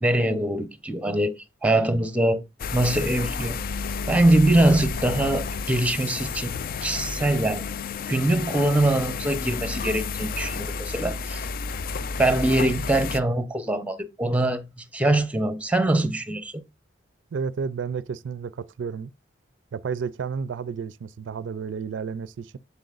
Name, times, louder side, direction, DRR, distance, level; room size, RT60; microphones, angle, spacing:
voice 1, 0.0-2.4 2.7-3.6 4.1-6.5 6.8-7.6 8.1-11.4 12.2-16.5, right 1 dB, 5° right, 0.7 m, -23 dB
sound 1, 2.6-13.2, left 5 dB, 50° left, 0.4 m, -31 dB
voice 2, 17.3-19.1 19.7-22.6, right 6 dB, 70° right, 0.4 m, -31 dB
7.8 x 7.2 x 2.4 m
head